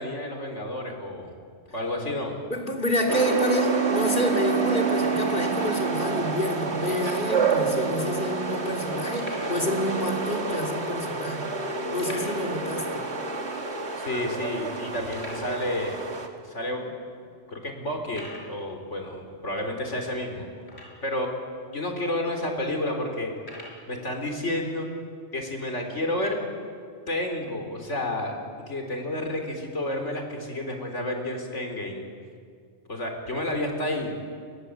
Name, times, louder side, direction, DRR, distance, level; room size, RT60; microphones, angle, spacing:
voice 1, 0.0-1.3 1.7-2.4 14.0-16.0 16.4-16.9 17.5-20.5 21.0-21.3 21.7-23.3 23.9-24.9 25.3-26.4 27.1-28.3 28.6-32.0 32.9-34.1, left 1 dB, 85° left, 3 dB, 4.2 m, -30 dB
voice 2, 2.5-11.5 11.9-13.1, equal, 45° left, 3 dB, 3.0 m, -28 dB
sound 1, 3.1-16.3, right 4 dB, 65° right, 2.4 m, -28 dB
sound 2, 8.6-8.7 9.1-9.7 10.4-10.5 12.0-12.6 12.9-13.0 13.4-13.5 14.1-14.2 15.1-15.5 16.3-16.4 17.0-17.1 18.1-18.5 20.6-21.2 22.0-22.1 23.4-23.8, left 1 dB, 65° left, 5.5 m, -43 dB
29.5 x 22.0 x 8.1 m, 2.2 s
omnidirectional pair, 1.2 m